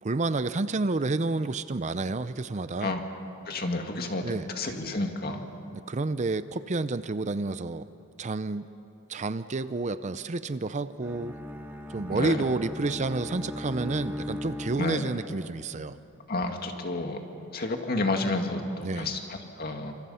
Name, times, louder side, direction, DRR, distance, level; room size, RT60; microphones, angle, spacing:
voice 1, 0.0-2.9 4.2-4.5 5.7-7.8 8.2-8.7 9.1-11.3 11.9-16.0 18.8-19.1, right 3 dB, 35° right, 13 dB, 0.5 m, -30 dB
voice 2, 3.5-5.5 12.1-12.5 14.8-15.1 16.3-17.2 17.5-18.6 19.0-19.9, left 2 dB, 45° left, 4 dB, 2.2 m, -30 dB
Bowed string instrument, 11.0-15.4, left 1 dB, 10° right, 1.5 m, -38 dB
28.5 x 26.0 x 5.7 m, 3.0 s
head